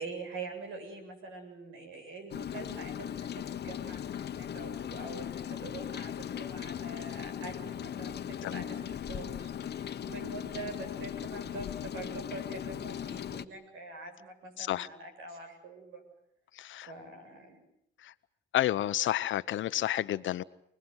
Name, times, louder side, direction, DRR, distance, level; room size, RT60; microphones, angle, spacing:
voice 1, 0.0-16.0 16.8-17.6, right 3 dB, 85° right, 7.4 m, -44 dB
Rain, 2.3-13.5, left 9 dB, 55° left, 1.2 m, -38 dB
voice 2, 14.6-14.9 16.5-16.9 18.0-18.1 18.5-20.4, left 13 dB, 75° left, 1.0 m, -30 dB
29.0 x 20.0 x 8.1 m
cardioid pair, 90°, 20 cm